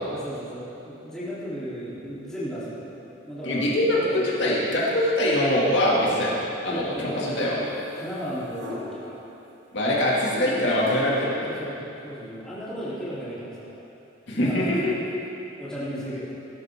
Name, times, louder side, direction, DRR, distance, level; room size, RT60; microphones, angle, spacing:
voice 1, 0.1-2.8 3.3-4.3 6.7-9.2 10.4-10.9 11.4-13.7 14.3-14.9 15.6-16.4, equal, 5° left, -11 dB, 3.5 m, -35 dB
voice 2, 3.4-7.6 9.7-11.5 14.3-14.8, left 1 dB, 70° left, -6 dB, 2.5 m, -23 dB
sound 1, 7.4-7.9 8.5-9.1 10.8-11.2, left 2 dB, 70° right, 2.0 m, -36 dB
18.5 x 12.0 x 3.8 m, 2.9 s
head